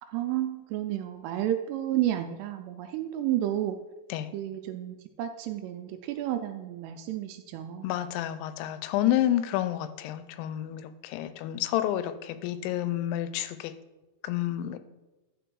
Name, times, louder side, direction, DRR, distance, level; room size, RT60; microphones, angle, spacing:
voice 1, 0.0-3.8 4.3-7.9, right 12 dB, 85° right, 7 dB, 2.5 m, -31 dB
voice 2, 7.8-13.7 14.2-14.8, left 12 dB, 90° left, 12 dB, 2.9 m, -29 dB
12.0 x 4.1 x 4.7 m, 1.1 s
omnidirectional pair, 5.1 m